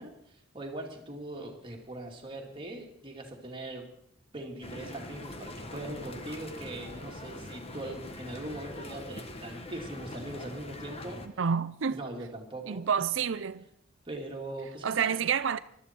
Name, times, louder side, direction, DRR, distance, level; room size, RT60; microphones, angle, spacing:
voice 1, 0.0-3.9 4.3-11.2 11.9-13.0 14.1-15.3, right 1 dB, 25° right, 2.4 m, -41 dB
sound 1, 4.6-11.3, left 2 dB, 30° left, 1.2 m, -43 dB
voice 2, 11.4-12.0 12.7-13.6 14.8-15.6, right 7 dB, 70° right, 0.5 m, -28 dB
21.0 x 12.5 x 4.4 m
head